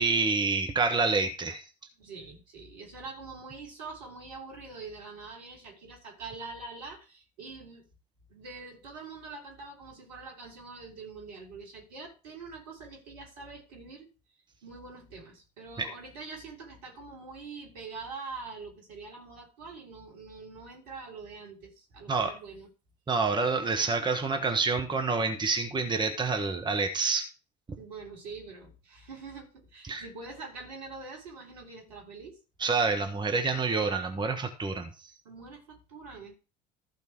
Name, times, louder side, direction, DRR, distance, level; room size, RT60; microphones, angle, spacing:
voice 1, 0.0-1.6 15.8-15.9 22.1-22.4 23.1-27.3 29.9-30.0 32.6-35.1, right 4 dB, 20° right, 1.7 m, -28 dB
voice 2, 2.0-7.9 8.3-14.1 14.6-22.7 27.7-32.4 35.3-36.4, right 4 dB, 65° right, 3.5 m, -44 dB
14.5 x 5.3 x 4.7 m
figure-of-eight pair, 60°, 21 cm